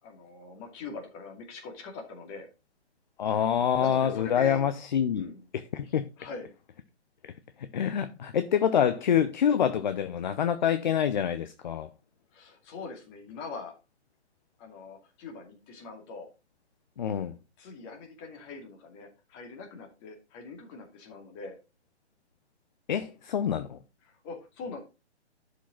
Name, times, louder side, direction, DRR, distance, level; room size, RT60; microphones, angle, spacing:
voice 1, 0.0-2.5 3.8-4.6 5.1-5.4 5.8-6.5 12.3-13.7 14.6-16.3 17.6-21.6 24.0-24.8, left 4 dB, 25° left, 2.4 m, -42 dB
voice 2, 3.2-6.0 7.6-11.9 17.0-17.4 22.9-23.8, left 8 dB, 40° left, 0.7 m, -26 dB
11.5 x 5.2 x 3.8 m
figure-of-eight pair, 145°, 35 cm